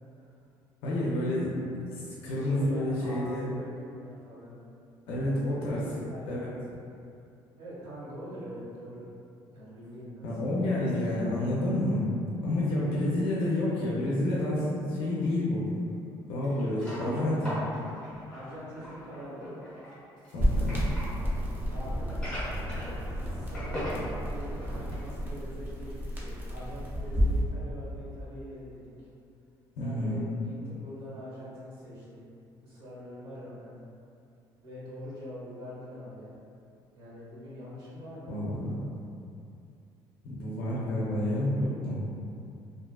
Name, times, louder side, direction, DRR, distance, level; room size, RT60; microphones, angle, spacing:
voice 1, 0.8-1.5 1.9-3.5 5.1-5.8 6.3-6.5 10.2-12.1 12.4-15.6 16.3-17.6 20.3-20.9 29.8-30.2 38.3-38.8 40.2-42.0, left 1 dB, 80° left, -6 dB, 0.4 m, -29 dB
voice 2, 2.1-4.7 5.1-6.6 7.6-9.1 9.5-10.2 18.3-19.6 21.7-22.2 23.3-29.1 29.8-32.3 32.6-33.8 34.6-36.4 36.9-38.3, equal, 70° right, -8 dB, 0.9 m, -44 dB
sound 1, 15.1-15.2 16.4-21.1 22.1-23.3 23.5-24.0 24.5-25.1 25.5-25.6 26.2-26.3, equal, 10° left, 0.8 m, -39 dB
sound 2, 20.4-27.4, equal, 25° right, 0.4 m, -31 dB
2.4 x 2.3 x 2.2 m, 2.6 s
cardioid pair, 155°, 9 cm